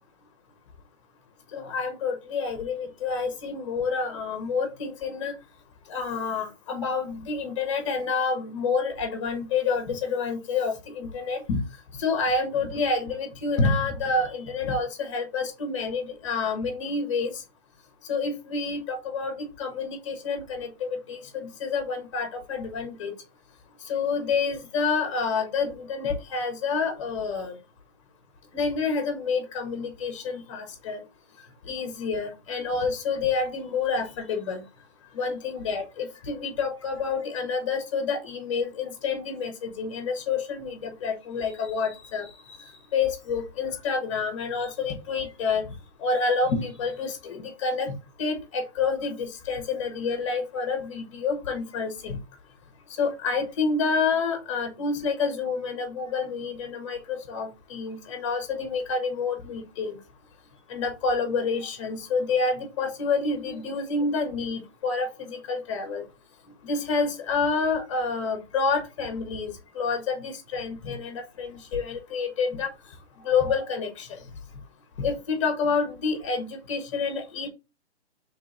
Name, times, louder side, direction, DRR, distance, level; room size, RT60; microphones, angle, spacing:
voice 1, 1.5-5.3 5.9-11.6 12.0-17.4 18.1-23.1 23.8-27.6 28.5-31.0 31.6-34.6 35.1-45.6 46.0-47.9 48.2-52.2 53.0-60.0 60.7-66.0 66.6-72.7 73.2-74.2 75.0-77.5, left 4 dB, 25° left, 0.9 m, -28 dB
3.7 x 3.3 x 4.0 m
hypercardioid pair, 165°, 35 cm